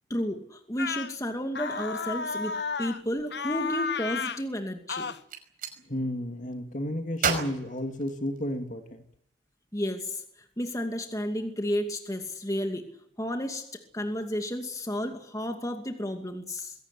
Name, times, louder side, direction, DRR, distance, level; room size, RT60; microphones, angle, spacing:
voice 1, 0.1-2.5 2.8-5.1 9.7-12.9 13.2-16.7, equal, 20° left, 5 dB, 2.5 m, -32 dB
sound 1, 0.8-1.1 1.5-3.0 3.3-4.4 4.9-5.2, left 5 dB, 60° left, 1.1 m, -32 dB
Gunshot gunfire, 5.1-5.8 7.2-8.7, right 5 dB, 50° right, 5.3 m, -32 dB
voice 2, 5.9-9.1, left 1 dB, 45° left, 6 dB, 2.8 m, -32 dB
22.0 x 17.0 x 10.0 m, 0.71 s
head